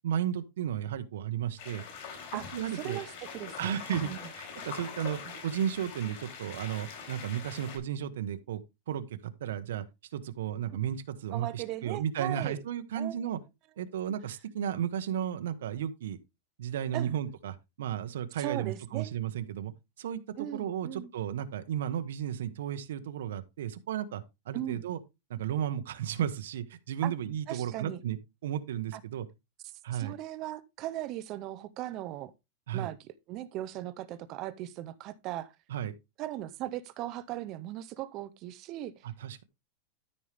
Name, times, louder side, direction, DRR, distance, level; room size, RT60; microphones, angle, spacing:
voice 1, 0.0-1.8 2.3-3.0 3.6-4.1 4.4-8.6 8.9-9.0 9.4-9.8 10.1-13.4 13.8-16.2 16.6-19.7 20.0-25.0 25.3-28.2 28.4-29.3 29.8-30.1 32.7-32.9 35.7-35.9 39.0-39.4, right 9 dB, 90° right, 1.1 m, -34 dB
sound 1, 1.6-7.8, left 6 dB, 50° left, 4.5 m, -43 dB
voice 2, 2.7-4.2 5.3-5.4 10.7-10.8 11.3-12.6 12.9-13.2 16.9-17.1 18.4-19.1 20.4-21.1 24.5-24.8 27.0-27.1 27.5-28.0 28.9-29.0 29.9-32.3 32.7-33.0 33.3-35.5 36.2-39.1, right 14 dB, 30° right, 0.5 m, -38 dB
13.0 x 5.4 x 3.4 m
supercardioid pair, 180°, 0 cm